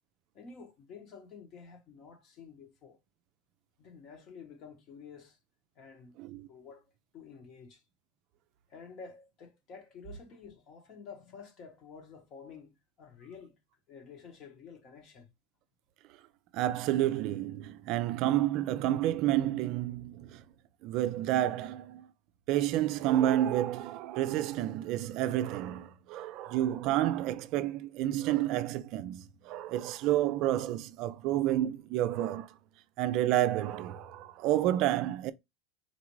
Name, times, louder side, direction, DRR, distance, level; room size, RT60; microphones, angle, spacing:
voice 1, 0.3-3.0 3.8-5.4 5.8-6.2 6.5-6.8 7.1-7.8 8.7-13.5 13.9-15.3, left 5 dB, 40° left, 1.1 m, -50 dB
voice 2, 16.5-20.4 20.8-22.1 22.5-32.5 33.0-35.3, right 13 dB, 50° right, 0.4 m, -30 dB
4.1 x 2.5 x 3.0 m
supercardioid pair, 140°, 0 cm